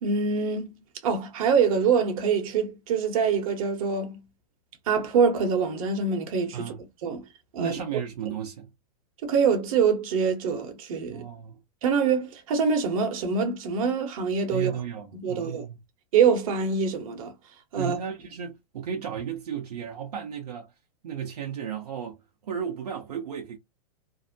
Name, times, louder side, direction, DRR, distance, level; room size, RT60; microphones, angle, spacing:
voice 1, 0.0-4.2 4.9-6.7 7.0-7.2 7.5-7.8 9.2-11.2 11.8-14.7 15.2-15.7 16.1-17.3 17.7-18.0, right 6 dB, 60° right, 1.0 m, -25 dB
voice 2, 7.6-8.7 11.1-11.6 14.5-15.8 17.7-20.7 21.0-23.6, right 8 dB, 80° right, 0.7 m, -34 dB
2.7 x 2.1 x 2.6 m
hypercardioid pair, 115°, 20 cm